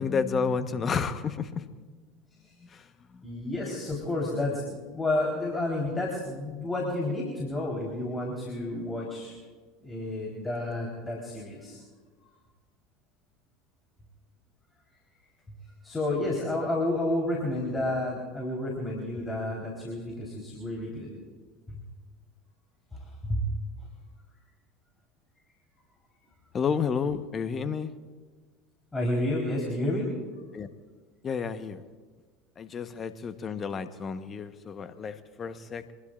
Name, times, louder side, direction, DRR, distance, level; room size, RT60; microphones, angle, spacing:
voice 1, 0.0-1.8 2.6-2.8 3.1-3.2 26.5-27.9 30.5-30.7 31.2-31.8 32.6-35.9, left 6 dB, 35° left, 10 dB, 1.2 m, -31 dB
voice 2, 3.2-9.3 9.8-11.8 15.8-21.1 21.7-21.8 23.2-23.5 28.9-30.1, left 1 dB, 15° left, -2 dB, 4.1 m, -30 dB
25.5 x 21.0 x 2.6 m, 1.5 s
hypercardioid pair, 75°, 0 cm